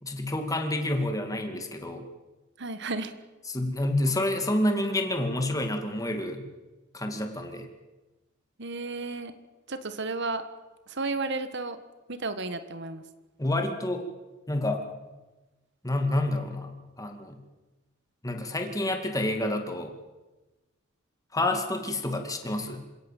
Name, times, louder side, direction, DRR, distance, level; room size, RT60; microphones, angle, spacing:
voice 1, 0.0-2.1 3.5-6.5 6.9-7.7 13.4-14.0 14.5-14.8 15.8-16.7 17.0-17.4 18.2-19.9 21.3-22.8, left 1 dB, 15° left, 4 dB, 2.5 m, -28 dB
voice 2, 2.6-3.1 8.6-9.3 9.7-10.4 10.9-11.8 12.1-13.0, right 3 dB, 60° right, 11 dB, 1.6 m, -33 dB
27.5 x 17.5 x 7.6 m, 1.1 s
head